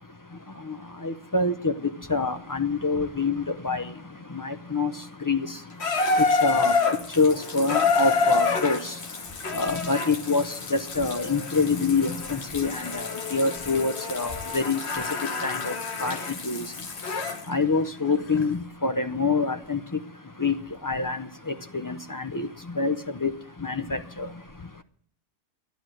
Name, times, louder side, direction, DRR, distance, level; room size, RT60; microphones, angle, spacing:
voice 1, 1.0-1.7 2.1-3.9 4.3-4.9 5.3-5.5 6.4-6.7 7.2-8.9 9.5-10.4 10.7-14.8 15.4-15.7 16.0-16.2 16.4-16.7 17.5-19.8 20.4-20.6 20.8-22.5 22.8-23.0 23.2-23.3 23.6-24.3, left 3 dB, 25° left, 9 dB, 0.4 m, -26 dB
Water tap faucet / Bathtub (filling or washing), 5.8-17.5 18.4-18.5, left 4 dB, 50° left, 1.4 m, -28 dB
11.5 x 11.5 x 7.6 m, 0.63 s
omnidirectional pair, 1.5 m